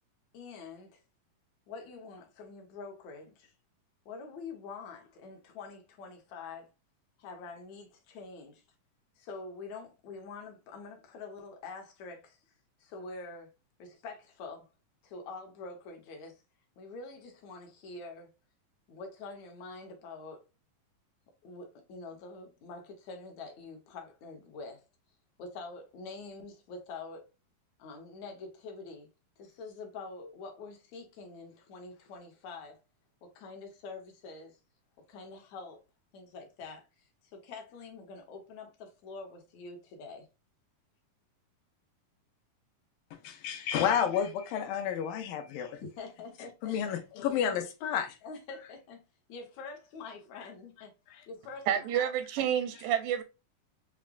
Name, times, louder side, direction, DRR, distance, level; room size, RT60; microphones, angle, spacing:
voice 1, 0.3-1.0 1.7-3.5 4.1-6.7 7.2-8.6 9.2-12.4 12.8-13.5 13.8-14.7 15.0-16.4 16.8-18.3 18.9-20.4 21.4-24.9 25.4-27.3 27.8-29.1 29.4-32.8 33.2-34.6 35.1-35.8 36.1-40.3 45.8-46.7 48.2-49.0 49.3-50.9 51.3-52.1, left 4 dB, 70° left, 2.0 m, -45 dB
voice 2, 43.2-45.8 46.6-48.2, left 8 dB, 85° left, 2.4 m, -31 dB
voice 3, 51.7-53.2, right 9 dB, 85° right, 2.1 m, -29 dB
6.0 x 2.1 x 2.3 m
omnidirectional pair, 3.9 m